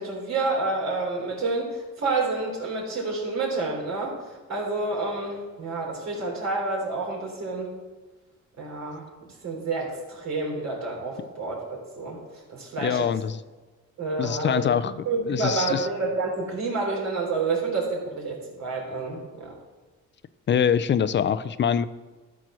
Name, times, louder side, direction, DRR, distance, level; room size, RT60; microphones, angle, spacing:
voice 1, 0.0-7.7 8.6-9.0 9.4-12.2 12.5-13.1 14.0-14.7 15.1-19.5, right 3 dB, 60° right, 0 dB, 3.5 m, -29 dB
voice 2, 12.8-13.4 14.2-14.9 15.3-15.9 20.5-21.8, left 8 dB, 40° left, 15 dB, 0.5 m, -24 dB
12.5 x 4.7 x 6.1 m, 1.3 s
cardioid pair, 90°, 30 cm